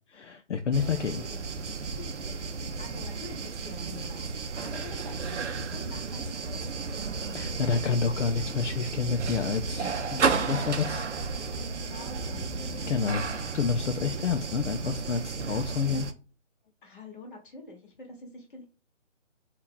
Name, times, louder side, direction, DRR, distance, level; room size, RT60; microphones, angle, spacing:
voice 1, 0.1-1.2 7.3-11.1 12.9-16.1, left 6 dB, 70° left, 7 dB, 0.5 m, -29 dB
sound 1, 0.7-16.1, right 4 dB, 70° right, 0.6 m, -33 dB
voice 2, 1.1-1.5 2.0-2.3 2.8-6.8 11.9-12.9 16.8-18.7, left 3 dB, 40° left, 1 dB, 1.2 m, -47 dB
2.8 x 2.4 x 3.6 m, 0.35 s
figure-of-eight pair, 155°, 37 cm